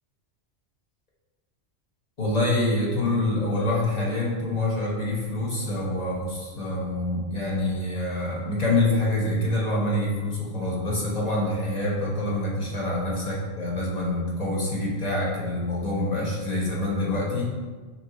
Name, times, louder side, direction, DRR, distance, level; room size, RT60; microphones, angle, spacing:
voice 1, 2.2-17.5, left 2 dB, 35° left, -5 dB, 1.0 m, -26 dB
4.3 x 2.9 x 3.7 m, 1.4 s
omnidirectional pair, 1.2 m